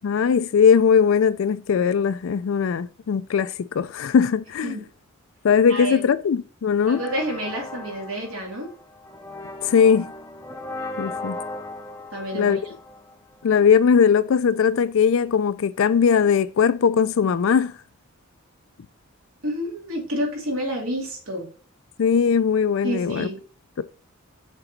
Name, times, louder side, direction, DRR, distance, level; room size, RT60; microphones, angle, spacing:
voice 1, 0.0-4.8 5.4-7.0 9.6-10.1 11.0-11.4 12.3-12.6 13.4-17.7 22.0-23.3 23.8-23.9, left 6 dB, 65° left, 0.4 m, -19 dB
voice 2, 5.7-6.0 6.9-8.7 12.1-12.6 19.4-21.5 22.8-23.4, equal, 75° right, 2.4 m, -29 dB
sound 1, 6.8-13.6, left 2 dB, 10° left, 0.7 m, -37 dB
7.1 x 3.9 x 4.0 m
head